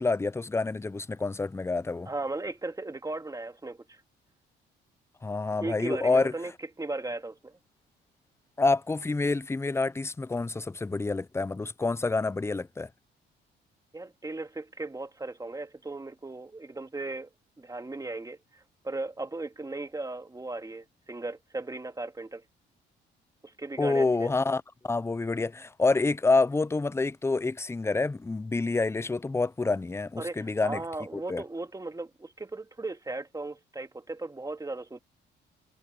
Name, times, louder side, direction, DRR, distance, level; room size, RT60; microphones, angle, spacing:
voice 1, 0.0-2.1 5.2-6.3 8.6-12.9 23.8-30.8 31.3-31.4, left 3 dB, 15° left, 0.5 m, -27 dB
voice 2, 2.1-4.0 5.6-6.5 6.8-7.6 13.9-17.3 17.6-22.4 23.4-24.3 30.2-35.0, right 2 dB, 15° right, 2.4 m, -37 dB
cardioid pair, 90°, 20 cm